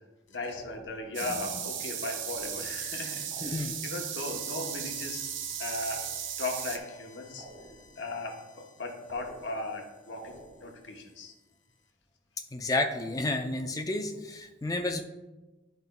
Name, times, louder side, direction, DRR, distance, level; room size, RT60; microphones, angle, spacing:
voice 1, 0.3-11.3, left 2 dB, 70° left, 2 dB, 1.0 m, -38 dB
sound 1, 0.5-1.3 2.3-3.0 3.3-4.0 7.4-8.1 9.1-9.8 10.2-10.9, right 2 dB, 50° right, 1.4 m, -50 dB
sound 2, 1.1-6.8, right 9 dB, 75° right, 0.6 m, -36 dB
voice 2, 3.4-3.7 12.5-15.0, left 2 dB, 20° left, 4 dB, 0.5 m, -31 dB
11.0 x 5.3 x 2.2 m, 1.2 s
head